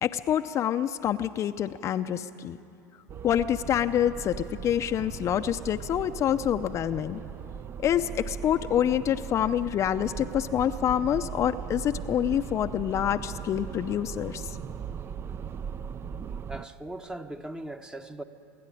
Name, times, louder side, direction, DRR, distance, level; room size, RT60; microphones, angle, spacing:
voice 1, 0.0-2.6 3.2-7.2 7.8-14.6, left 10 dB, 35° left, 0.5 m, -27 dB
sound 1, 3.1-16.7, right 7 dB, 30° right, 0.5 m, -39 dB
voice 2, 16.5-18.2, right 1 dB, 10° right, 0.9 m, -39 dB
25.5 x 11.5 x 10.0 m
supercardioid pair, 110°, 8 cm